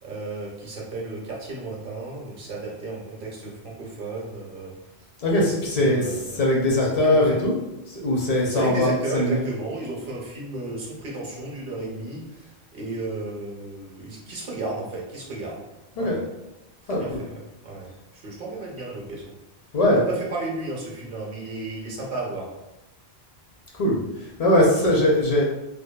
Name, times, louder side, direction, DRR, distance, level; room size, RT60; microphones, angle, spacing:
voice 1, 0.0-4.8 5.4-6.4 7.0-7.4 8.2-15.6 15.9-16.3 16.9-19.3 19.9-22.5 24.8-24.9, right 2 dB, 60° right, -2 dB, 0.7 m, -34 dB
voice 2, 5.2-7.5 7.9-9.4 16.0-16.1 16.9-17.2 19.7-20.1 23.7-25.4, left 1 dB, 45° left, -2 dB, 0.5 m, -21 dB
2.8 x 2.2 x 2.2 m, 0.95 s
omnidirectional pair, 1.1 m